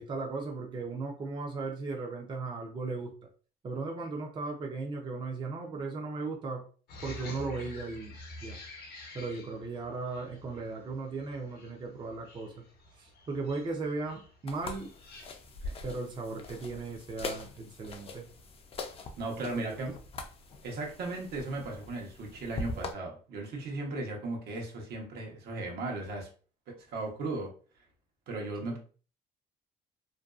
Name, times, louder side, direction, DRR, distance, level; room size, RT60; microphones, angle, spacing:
voice 1, 0.0-3.2 3.6-6.6 7.0-8.6 9.1-12.6 13.0-14.9 15.8-18.3 19.4-19.8 28.6-28.8, right 3 dB, 30° right, 1 dB, 0.5 m, -37 dB
sound 1, 6.9-15.2, left 2 dB, 70° left, 0.7 m, -49 dB
sound 2, 14.5-22.9, left 3 dB, 35° left, 0.4 m, -43 dB
voice 2, 19.2-20.0 20.6-26.3 26.7-27.5 28.3-28.8, right 2 dB, 70° right, 0 dB, 0.9 m, -36 dB
2.5 x 2.2 x 2.3 m, 0.39 s
cardioid pair, 110°, 17 cm